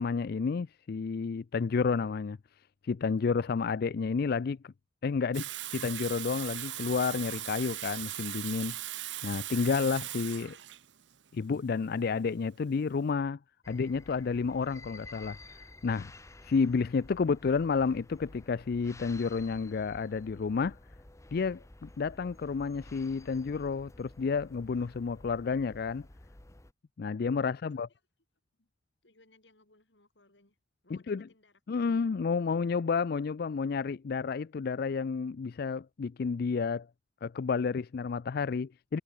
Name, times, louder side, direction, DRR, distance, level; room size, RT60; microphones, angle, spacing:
voice 1, 0.0-2.4 2.8-4.7 5.0-8.8 9.2-10.6 11.3-13.4 13.7-16.1 16.4-20.8 21.3-26.1 27.0-27.9 31.1-31.2 31.7-36.9 37.2-39.0, left 5 dB, 60° left, 0.4 m, -30 dB
Water tap faucet / Sink (filling or washing), 5.3-13.0, right 14 dB, 85° right, 1.0 m, -39 dB
sound 1, 13.6-26.7, left 2 dB, 15° left, 0.9 m, -52 dB
voice 2, 27.4-28.0 28.6-28.7 29.0-30.6 30.8-31.8, left 2 dB, 75° left, 5.9 m, -65 dB
head